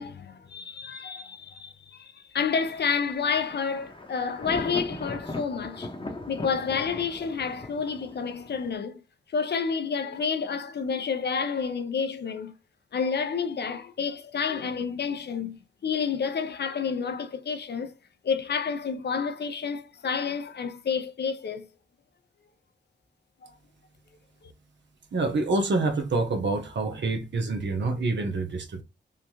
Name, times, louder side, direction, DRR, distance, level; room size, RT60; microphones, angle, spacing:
voice 1, 0.0-5.9 6.3-9.0 9.3-12.5 12.9-15.6 15.8-17.9 18.2-21.7, left 6 dB, 60° left, 0.6 m, -29 dB
Thunder, 2.4-8.8, left 2 dB, 25° left, 0.9 m, -39 dB
voice 2, 25.1-28.8, right 3 dB, 70° right, 0.9 m, -27 dB
3.5 x 2.3 x 3.0 m
cardioid pair, 55°, 19 cm